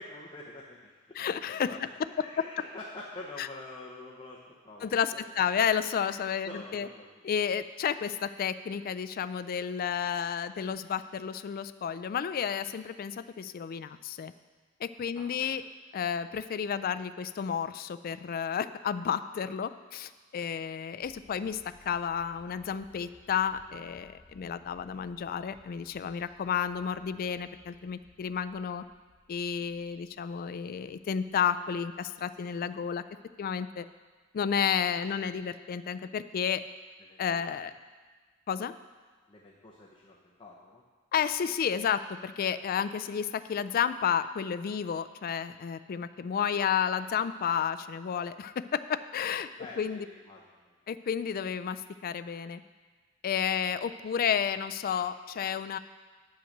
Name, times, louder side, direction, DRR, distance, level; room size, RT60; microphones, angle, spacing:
voice 1, 0.0-1.2 1.7-5.4 6.4-7.4 15.1-15.5 37.0-37.7 39.3-40.8 49.6-50.7, left 2 dB, 25° left, -3 dB, 0.8 m, -47 dB
voice 2, 1.2-1.8 3.4-3.5 4.8-6.9 7.2-14.3 14.8-15.6 15.9-28.8 29.3-33.0 33.4-33.9 34.3-36.6 37.2-37.7 38.5-38.7 41.1-49.5 49.8-50.1 50.9-52.6 53.2-55.8, left 7 dB, 45° left, 13 dB, 0.3 m, -31 dB
sound 1, 21.0-33.7 34.2-34.3, equal, 65° left, 1.2 m, -62 dB
8.7 x 5.6 x 6.5 m, 1.4 s
head